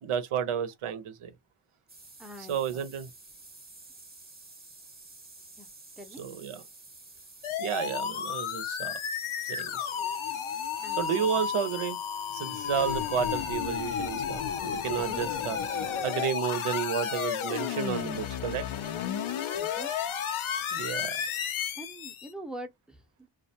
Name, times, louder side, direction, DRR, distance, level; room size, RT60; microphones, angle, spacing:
voice 1, 0.0-1.3 2.5-3.1 6.2-6.6 7.6-9.0 9.5-9.9 11.0-12.0 12.3-18.6 20.7-21.2, right 8 dB, 80° right, 0.7 m, -32 dB
sound 1, 1.9-15.9, right 3 dB, 20° right, 0.9 m, -51 dB
voice 2, 2.2-3.1 5.6-5.7 6.0-6.3 10.8-11.3 19.5-19.9 20.5-20.8 21.7-23.3, right 1 dB, ahead, 0.6 m, -45 dB
sound 2, 7.4-22.3, left 8 dB, 75° left, 0.6 m, -32 dB
2.3 x 2.1 x 2.7 m
cardioid pair, 70°, 49 cm